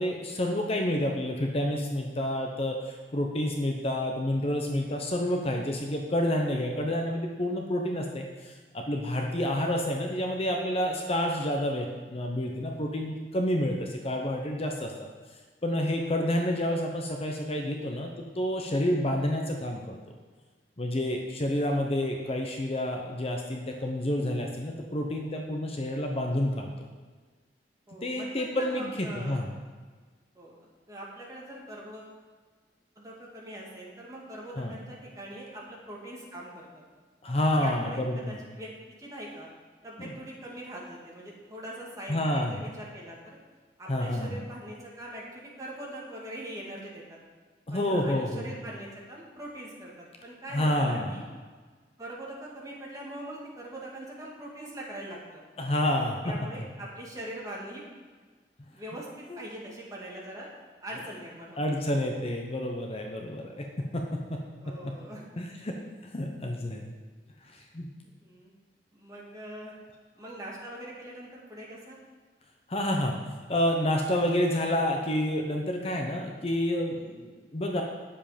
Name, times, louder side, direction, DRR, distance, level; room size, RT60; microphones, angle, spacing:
voice 1, 0.0-15.1 15.6-18.1 18.4-20.0 20.8-26.7 28.0-29.5 34.6-34.7 37.2-38.4 40.0-40.1 42.1-42.6 43.9-44.4 47.7-48.5 50.5-51.2 55.6-56.3 59.3-59.4 61.6-63.6 63.9-64.0 64.3-64.4 65.4-65.7 66.1-66.9 67.4-67.9 72.7-73.2 73.5-77.8, left 1 dB, 35° left, 2 dB, 0.9 m, -29 dB
voice 2, 27.9-29.4 30.3-30.6 30.9-32.2 33.0-36.8 37.6-39.5 39.8-43.2 43.8-47.2 47.7-51.2 52.0-55.4 55.8-57.8 58.7-60.5 60.8-61.6 64.6-65.4 68.2-68.5 68.9-69.7 70.2-72.0, right 1 dB, 20° right, -4 dB, 2.2 m, -42 dB
10.0 x 7.4 x 5.1 m, 1.4 s
head